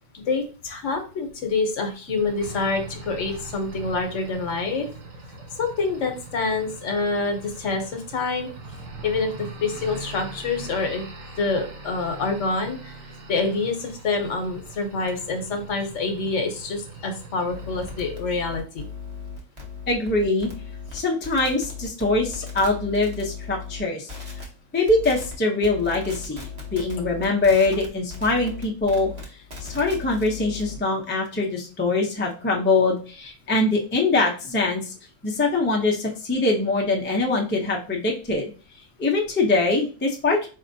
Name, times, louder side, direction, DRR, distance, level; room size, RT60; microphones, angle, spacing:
voice 1, 0.1-4.9 5.6-8.5 9.0-9.3 9.6-11.0 11.4-13.0 13.3-18.9, left 3 dB, 70° left, 5 dB, 1.1 m, -26 dB
sound 1, 2.1-18.1, right 2 dB, 85° right, 1.2 m, -41 dB
sound 2, 17.5-23.8 24.1-24.4 24.9-25.4 25.6-30.8, left 5 dB, 35° right, 0.9 m, -37 dB
voice 2, 19.9-20.5 20.9-24.1 24.7-29.1 29.6-34.9 35.2-38.4 39.0-40.5, left 3 dB, 15° left, -1 dB, 0.3 m, -23 dB
4.3 x 2.7 x 2.6 m, 0.37 s
omnidirectional pair, 1.3 m